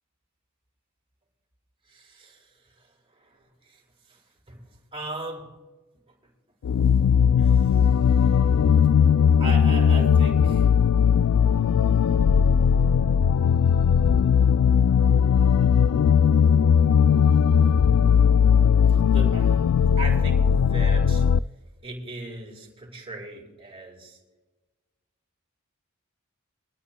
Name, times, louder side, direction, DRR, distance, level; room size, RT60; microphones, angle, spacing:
voice 1, 1.8-5.6 6.1-6.3 7.3-8.4 9.2-10.7 18.9-19.7 20.0-21.3 21.8-24.2, right 2 dB, 25° right, -1 dB, 4.5 m, -39 dB
sound 1, 6.6-21.4, left 7 dB, 75° left, 0.3 m, -19 dB
25.0 x 13.0 x 2.2 m, 1.2 s
head